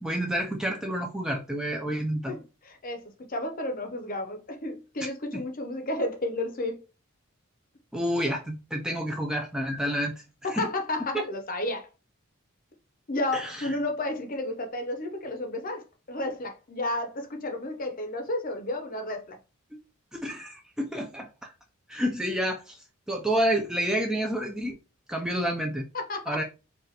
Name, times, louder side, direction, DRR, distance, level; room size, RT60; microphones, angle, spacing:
voice 1, 0.0-2.4 5.3-5.4 7.9-10.2 10.5-10.7 13.3-13.8 19.7-19.8 20.1-21.5 21.9-22.8 23.1-24.8 25.1-25.9 26.3-26.4, equal, 5° right, 0.4 m, -29 dB
voice 2, 2.3-6.8 10.4-11.9 13.1-19.4 25.9-26.4, left 2 dB, 40° left, 0.7 m, -32 dB
4.7 x 2.4 x 2.9 m
head